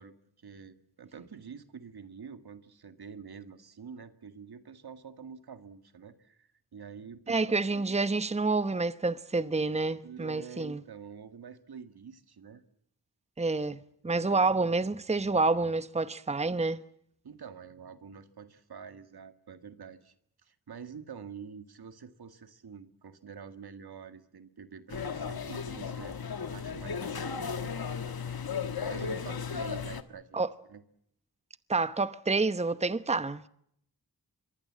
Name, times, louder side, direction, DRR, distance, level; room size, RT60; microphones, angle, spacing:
voice 1, 0.0-8.0 10.0-12.6 14.0-14.5 17.2-20.1 20.4-27.8 28.8-30.4 30.7-30.8, right 6 dB, 80° right, 1.9 m, -47 dB
voice 2, 7.3-10.8 13.4-16.8 30.3-30.5 31.7-33.4, right 3 dB, 15° right, 0.9 m, -28 dB
sound 1, 24.9-30.0, left 6 dB, 70° left, 1.6 m, -35 dB
25.0 x 22.5 x 7.5 m
wide cardioid pair, 60°, 38 cm